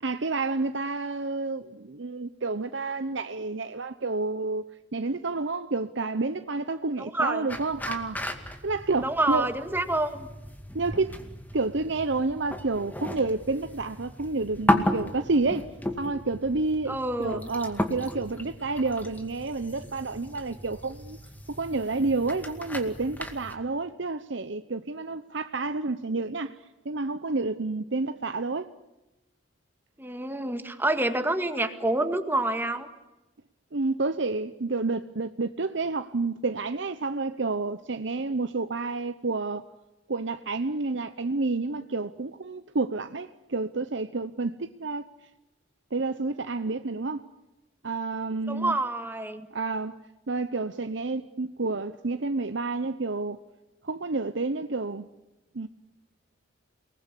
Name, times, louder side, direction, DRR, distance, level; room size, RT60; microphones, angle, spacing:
voice 1, 0.0-4.6 4.9-8.2 8.6-9.5 10.7-11.2 11.5-15.7 16.0-21.2 21.5-26.6 26.8-28.7 33.7-39.6 40.1-45.1 45.9-47.3 47.8-48.8 49.5-50.0 50.3-53.4 53.8-55.1 55.5-55.7, right 3 dB, 70° right, 0.9 m, -29 dB
voice 2, 7.0-7.5 9.0-10.3 16.9-17.5 30.0-32.9 48.5-49.5, right 2 dB, 10° right, 1.9 m, -28 dB
sound 1, 7.5-23.6, left 1 dB, 10° left, 2.2 m, -34 dB
29.0 x 20.0 x 9.9 m
head